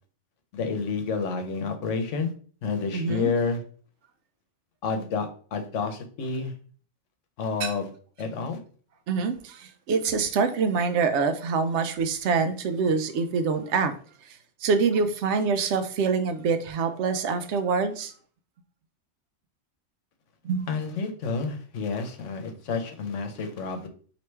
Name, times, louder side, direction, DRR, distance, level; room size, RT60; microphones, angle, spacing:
voice 1, 0.5-2.3 2.6-3.6 4.8-6.5 7.4-7.9 8.2-8.6 20.7-23.9, left 4 dB, 80° left, 1.1 m, -29 dB
voice 2, 2.9-3.3 7.6-7.7 9.1-13.9 14.2-18.1 20.4-20.7, right 5 dB, 75° right, 0.8 m, -25 dB
3.2 x 2.9 x 4.5 m
omnidirectional pair, 1.2 m